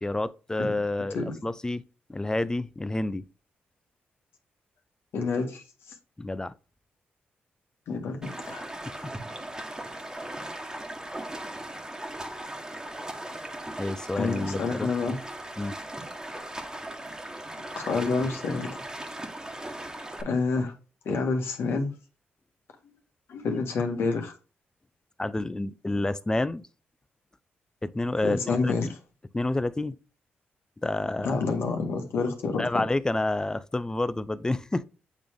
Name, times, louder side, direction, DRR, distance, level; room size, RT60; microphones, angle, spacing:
voice 1, 0.0-1.8 2.1-3.3 6.2-6.5 8.8-8.9 13.8-15.2 15.6-15.8 25.2-26.7 27.8-28.9 29.3-30.0 30.8-31.4 32.6-34.8, left 2 dB, 15° left, 0.5 m, -29 dB
voice 2, 5.1-5.6 7.9-8.7 14.2-15.2 17.7-18.8 20.2-20.7 21.0-21.9 23.3-24.3 28.2-29.0 31.2-32.8, left 4 dB, 75° left, 1.7 m, -28 dB
Stream, 8.2-20.2, right 1 dB, 15° right, 1.5 m, -38 dB
8.2 x 3.4 x 3.6 m
cardioid pair, 70°, 4 cm